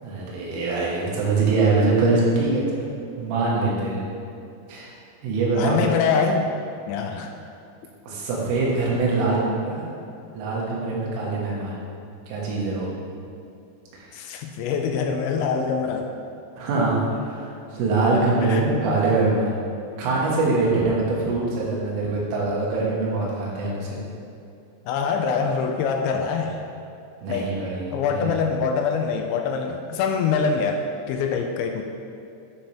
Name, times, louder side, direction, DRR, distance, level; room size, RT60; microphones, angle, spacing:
voice 1, 0.0-2.9 3.2-4.0 4.7-4.9 5.2-5.8 8.0-9.9 10.3-11.8 12.3-12.9 14.0-14.1 16.6-19.5 20.0-24.0 27.2-28.3, right 3 dB, 90° right, -5 dB, 4.1 m, -23 dB
voice 2, 5.6-6.5 6.9-7.4 14.1-16.1 18.4-19.0 24.9-26.6 27.3-27.5 27.9-31.8, left 5 dB, 85° left, 4 dB, 2.7 m, -24 dB
11.5 x 5.4 x 3.5 m, 2.7 s
omnidirectional pair, 5.5 m